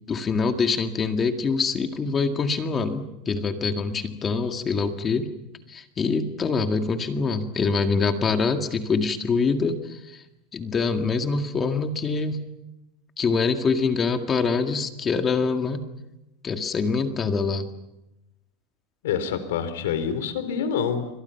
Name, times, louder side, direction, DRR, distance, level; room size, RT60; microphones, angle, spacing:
voice 1, 0.1-5.3 5.7-10.2 10.5-12.4 13.2-15.8 16.4-17.7, left 4 dB, 25° left, 6 dB, 2.0 m, -25 dB
voice 2, 19.0-21.1, left 7 dB, 90° left, 11 dB, 4.0 m, -26 dB
28.5 x 25.5 x 5.9 m, 0.90 s
supercardioid pair, 140°, 0 cm